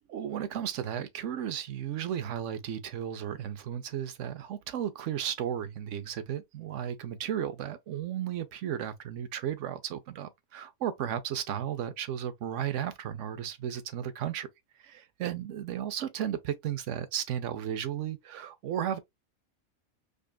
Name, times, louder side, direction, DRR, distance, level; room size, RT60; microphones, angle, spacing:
voice 1, 0.0-14.5 14.8-19.0, right 10 dB, 70° right, 1.0 m, -34 dB
5.1 x 2.4 x 2.2 m
omnidirectional pair, 1.4 m